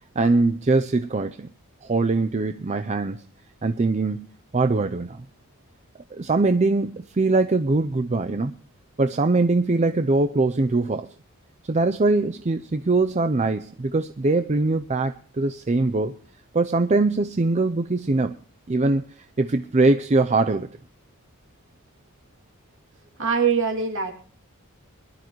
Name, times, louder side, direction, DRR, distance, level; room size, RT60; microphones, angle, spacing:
voice 1, 0.2-1.5 1.8-3.2 3.6-4.3 4.5-5.2 6.1-8.6 9.0-11.1 11.6-16.2 16.5-18.4 18.7-19.0 19.4-20.7, right 3 dB, 30° right, 9 dB, 0.5 m, -22 dB
voice 2, 23.2-24.1, right 6 dB, 60° right, 3 dB, 2.7 m, -22 dB
22.5 x 11.5 x 3.1 m, 0.43 s
head